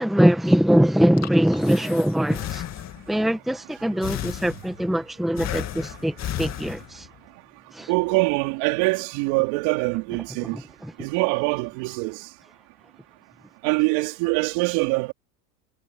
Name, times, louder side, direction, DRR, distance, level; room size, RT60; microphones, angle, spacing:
voice 1, 0.0-2.6 3.1-7.1 7.7-7.9 10.5-10.9, equal, ahead, 1.4 m, -22 dB
Breathing, 0.9-3.2 4.0-4.9 5.4-7.2, left 12 dB, 35° left, 2.3 m, -34 dB
voice 2, 7.9-10.6 11.0-12.3 13.6-15.1, right 27 dB, 60° right, 3.8 m, -24 dB
hypercardioid pair, 110°, 46 cm